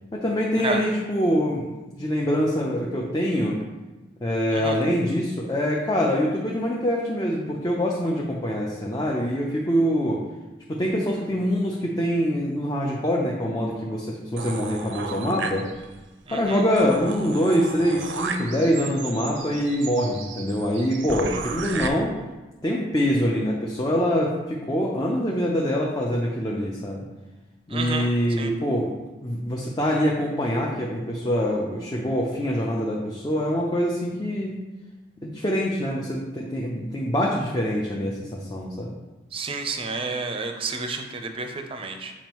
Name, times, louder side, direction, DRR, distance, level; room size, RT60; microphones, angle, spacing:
voice 1, 0.1-3.6 4.2-10.2 10.7-15.7 16.3-22.1 22.6-27.1 27.7-28.9 29.2-34.6 35.2-38.9, equal, 20° left, -2 dB, 0.6 m, -24 dB
voice 2, 4.5-4.8 16.3-16.6 27.7-28.1 28.4-28.5 39.3-42.1, right 3 dB, 30° right, 5 dB, 0.6 m, -30 dB
sound 1, 14.4-16.0 16.4-16.5 16.8-21.9, right 5 dB, 80° right, 0.6 m, -34 dB
7.2 x 5.0 x 3.0 m, 1.1 s
head